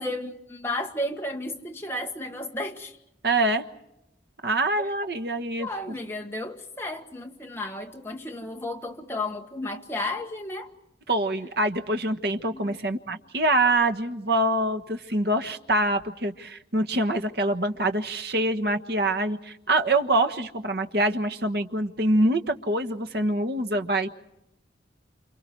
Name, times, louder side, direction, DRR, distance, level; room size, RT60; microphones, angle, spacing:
voice 1, 0.0-2.9 4.8-4.9 5.6-10.7 12.5-12.8, left 1 dB, 15° left, 1.5 m, -33 dB
voice 2, 3.2-3.6 4.4-5.7 11.1-24.1, right 1 dB, 60° right, 1.4 m, -25 dB
28.5 x 28.0 x 4.7 m
head